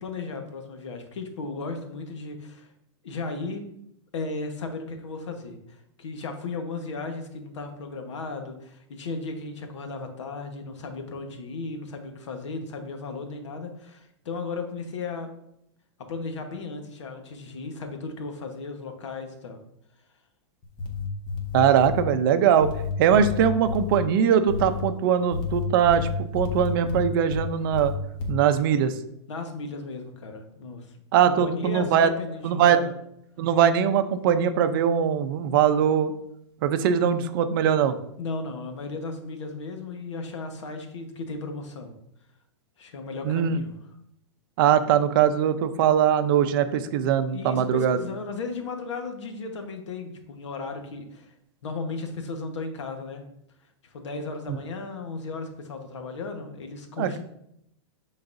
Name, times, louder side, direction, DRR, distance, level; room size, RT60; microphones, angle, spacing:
voice 1, 0.0-2.7 3.0-3.6 4.1-15.3 16.1-19.6 29.3-30.9 31.3-32.9 38.2-41.9 42.8-43.7 47.3-51.3 51.6-53.2 53.8-57.2, left 3 dB, 85° left, 5 dB, 1.3 m, -35 dB
sound 1, 20.6-22.1 22.6-24.0 24.5-24.8 25.3-27.4 27.7-28.3, left 6 dB, 30° left, 1.2 m, -30 dB
voice 2, 21.5-22.7 23.0-27.9 28.3-28.9 31.1-32.1 32.4-32.8 33.4-36.1 36.6-37.9 43.2-43.6 44.6-48.0 57.0-57.2, right 8 dB, 50° right, 10 dB, 0.6 m, -21 dB
10.5 x 4.0 x 2.6 m, 0.76 s
hypercardioid pair, 150°, 15 cm